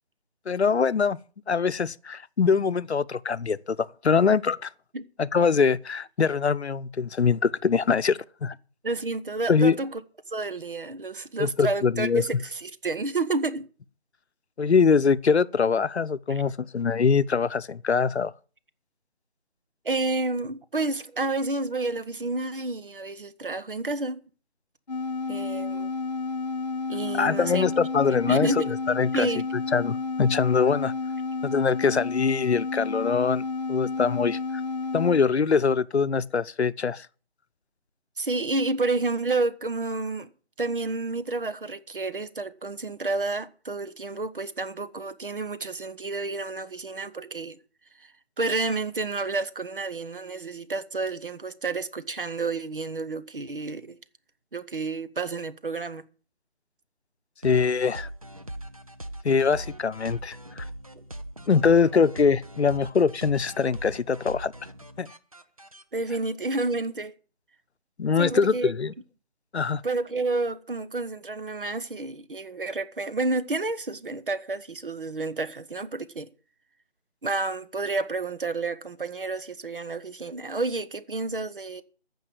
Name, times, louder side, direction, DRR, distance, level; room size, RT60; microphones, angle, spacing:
voice 1, 0.5-1.2 1.5-4.7 5.2-8.5 9.5-9.8 11.4-12.3 14.6-18.3 27.1-28.6 28.9-29.3 29.7-30.9 31.4-33.4 33.7-34.4 34.9-37.1 57.4-58.1 59.2-60.7 61.5-64.5 65.0-65.1 68.0-68.9 69.5-69.8, left 5 dB, 85° left, 0.8 m, -23 dB
voice 2, 8.8-10.0 10.3-13.7 16.3-16.4 19.8-24.2 25.3-25.9 26.9-27.7 28.3-28.7 29.1-29.4 38.2-40.3 40.6-47.6 48.0-48.1 48.4-54.0 54.5-56.0 65.9-67.1 68.2-68.7 69.8-76.3 77.2-81.8, right 3 dB, 55° right, 1.2 m, -30 dB
sound 1, 24.9-35.3, left 4 dB, 40° left, 0.9 m, -31 dB
sound 2, 57.4-65.8, right 1 dB, 35° right, 0.7 m, -40 dB
15.0 x 5.5 x 9.2 m
figure-of-eight pair, 175°, 32 cm